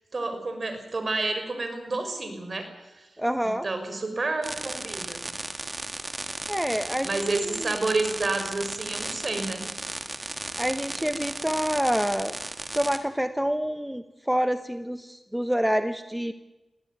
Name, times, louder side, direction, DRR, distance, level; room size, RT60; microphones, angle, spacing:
voice 1, 0.1-2.7 3.0-3.1 3.4-5.2 7.0-9.6, right 3 dB, 50° right, 7 dB, 5.1 m, -29 dB
voice 2, 3.2-3.6 6.5-7.2 7.6-7.7 10.6-12.3 12.7-16.3, equal, 5° right, 10 dB, 1.2 m, -27 dB
sound 1, 4.4-13.0, right 2 dB, 30° right, 2.4 m, -35 dB
20.0 x 16.5 x 9.4 m, 1.0 s
cardioid pair, 50°, 0 cm